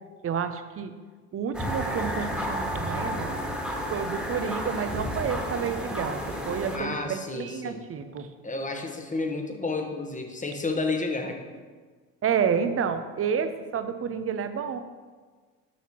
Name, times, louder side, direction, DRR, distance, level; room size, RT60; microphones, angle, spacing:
voice 1, 0.2-0.9 1.3-3.4 3.9-8.3 12.2-14.8, right 7 dB, 30° right, 10 dB, 0.6 m, -30 dB
sound 1, 1.5-6.8, equal, ahead, 1.6 m, -31 dB
voice 2, 6.7-7.8 8.4-11.4, left 3 dB, 15° left, 4 dB, 1.1 m, -31 dB
9.2 x 5.8 x 3.0 m, 1.4 s
hypercardioid pair, 60°, 47 cm